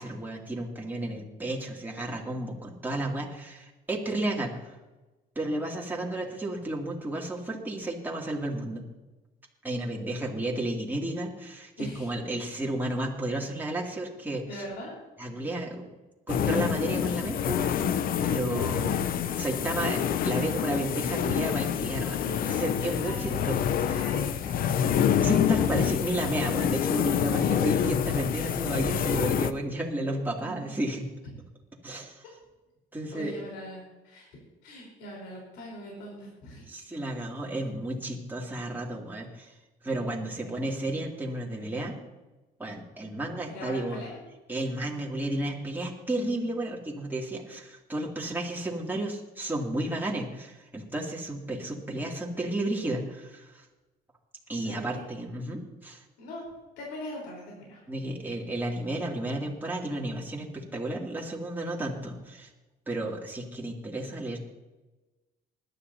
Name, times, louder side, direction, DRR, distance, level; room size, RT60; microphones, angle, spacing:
voice 1, 0.0-4.8 5.3-8.8 9.6-14.4 15.2-15.9 16.3-18.9 19.4-23.6 25.2-31.1 31.8-32.2 32.9-33.4 36.7-39.5 39.8-42.0 42.6-44.0 44.5-53.7 54.5-56.0 57.9-62.5 62.9-64.4, right 1 dB, 10° right, -3 dB, 2.6 m, -32 dB
voice 2, 11.8-12.1 14.4-15.0 22.8-23.5 23.8-25.0 27.3-27.7 30.4-30.7 33.1-34.3 34.6-36.7 40.4-40.5 43.5-44.2 54.6-55.0 56.2-56.4 56.8-57.8, equal, 90° left, -2 dB, 4.1 m, -41 dB
sound 1, 16.3-29.5, left 9 dB, 60° left, 0.7 m, -27 dB
20.0 x 11.5 x 2.8 m, 1.1 s
cardioid pair, 110°, 17 cm